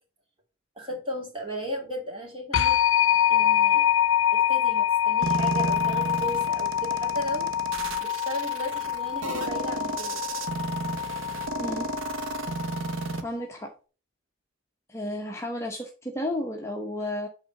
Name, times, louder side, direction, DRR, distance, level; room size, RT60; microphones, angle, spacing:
voice 1, 0.8-2.8 3.3-3.8 4.3-7.5 8.0-10.2, equal, 25° right, 0 dB, 2.6 m, -35 dB
sound 1, 2.5-13.2, left 10 dB, 90° left, 0.5 m, -25 dB
sound 2, 5.2-13.2, right 3 dB, 80° right, 0.9 m, -33 dB
voice 2, 11.6-11.9 13.2-13.7 14.9-17.3, left 1 dB, 15° left, 1 dB, 0.8 m, -32 dB
8.4 x 3.8 x 5.2 m, 0.35 s
head